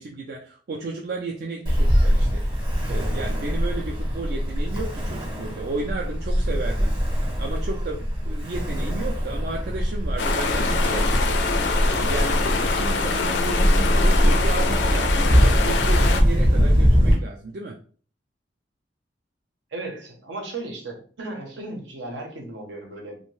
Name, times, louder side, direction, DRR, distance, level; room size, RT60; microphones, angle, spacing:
voice 1, 0.0-2.4 2.9-6.9 7.4-17.8, right 3 dB, 60° right, -1 dB, 0.4 m, -33 dB
Ocean, 1.7-17.1, equal, 25° right, 0.7 m, -22 dB
sound 1, 10.2-16.2, left 4 dB, 70° left, 0.4 m, -25 dB
voice 2, 19.7-23.2, right 2 dB, 80° right, 2 dB, 0.8 m, -35 dB
2.6 x 2.1 x 3.0 m, 0.42 s
head